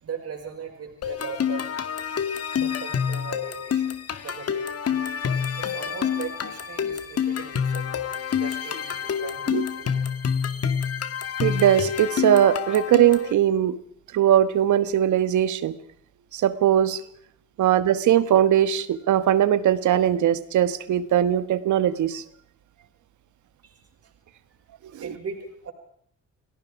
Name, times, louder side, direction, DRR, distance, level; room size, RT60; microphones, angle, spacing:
voice 1, 0.0-1.7 2.6-3.9 4.2-4.7 5.6-7.9 8.3-10.1 23.6-23.8 25.0-25.7, right 6 dB, 50° right, 3 dB, 5.6 m, -38 dB
sound 1, 1.0-13.3, left 7 dB, 55° left, 2.2 m, -27 dB
voice 2, 11.4-13.8 14.1-15.7 16.3-17.0 17.6-22.2 24.9-25.1, right 11 dB, 75° right, 13 dB, 1.7 m, -20 dB
29.0 x 18.0 x 4.9 m, 0.64 s
cardioid pair, 90°, 30 cm